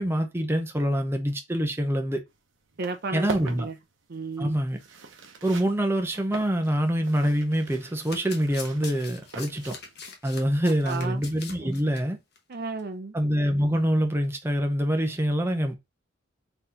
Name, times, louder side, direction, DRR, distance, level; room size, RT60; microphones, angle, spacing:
voice 1, 0.0-2.2 3.1-3.7 4.4-4.8 5.4-9.8 10.2-12.2 13.1-15.7, equal, 10° right, 0.7 m, -25 dB
sound 1, 2.3-2.4 2.6-10.1, right 4 dB, 75° right, 1.0 m, -42 dB
voice 2, 2.8-3.8 4.1-4.6 10.6-11.2 11.6-11.7 12.5-13.1, right 4 dB, 50° right, 0.6 m, -34 dB
Domestic sounds home sounds, 7.9-12.0 12.3-12.5 12.8-12.9, left 5 dB, 55° left, 1.0 m, -43 dB
3.9 x 3.9 x 2.9 m
head